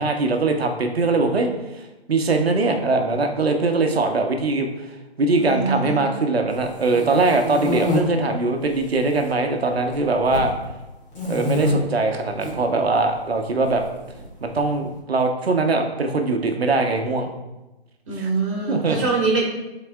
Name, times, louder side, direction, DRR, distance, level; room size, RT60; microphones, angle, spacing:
voice 1, 0.0-4.9 5.2-10.5 11.3-13.8 14.4-17.3 18.2-18.3 18.7-19.0, right 3 dB, 70° right, 4 dB, 0.9 m, -21 dB
voice 2, 5.4-6.1 18.1-19.4, right 4 dB, 30° right, -3 dB, 1.7 m, -24 dB
sound 1, 6.6-8.0 8.7-9.3 9.5-10.5 11.1-11.7 12.3-12.5 13.7-14.6, left 2 dB, 40° left, 2.1 m, -27 dB
10.0 x 4.1 x 2.3 m, 1.0 s
hypercardioid pair, 165°, 32 cm